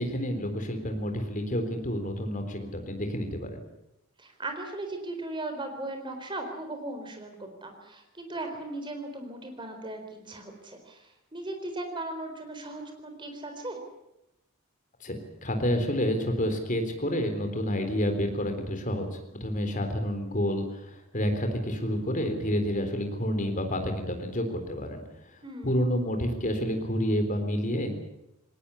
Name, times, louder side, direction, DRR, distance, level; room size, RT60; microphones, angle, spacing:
voice 1, 0.0-3.6 15.0-28.0, equal, 35° left, 6 dB, 3.8 m, -29 dB
voice 2, 4.2-13.8 25.4-25.8, right 2 dB, 20° right, 5 dB, 4.2 m, -37 dB
19.0 x 19.0 x 9.8 m, 0.86 s
head